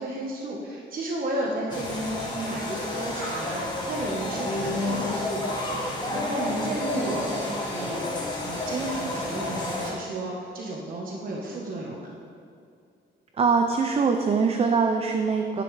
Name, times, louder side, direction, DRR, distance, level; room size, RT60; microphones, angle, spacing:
voice 1, 0.0-5.5 5.8-8.1 8.4-12.1, right 1 dB, 45° right, -3 dB, 1.2 m, -33 dB
sound 1, 1.7-9.9, left 1 dB, 20° left, 1.5 m, -30 dB
voice 2, 13.4-15.6, right 5 dB, 30° right, 5 dB, 0.5 m, -23 dB
10.5 x 9.4 x 3.3 m, 2.4 s
wide cardioid pair, 165°, 20 cm